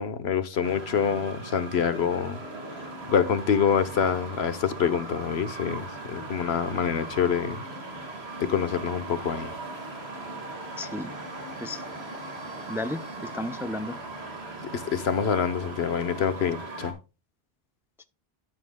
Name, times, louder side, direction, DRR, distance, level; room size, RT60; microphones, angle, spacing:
voice 1, 0.0-2.4 2.7-7.6 8.4-9.5 14.7-17.0, left 7 dB, 90° left, 1.2 m, -26 dB
sound 1, 0.6-16.9, right 2 dB, 85° right, 2.3 m, -39 dB
voice 2, 10.8-11.1 11.6-11.8 12.7-14.0, left 1 dB, 5° right, 0.5 m, -33 dB
12.0 x 7.4 x 2.2 m
omnidirectional pair, 1.0 m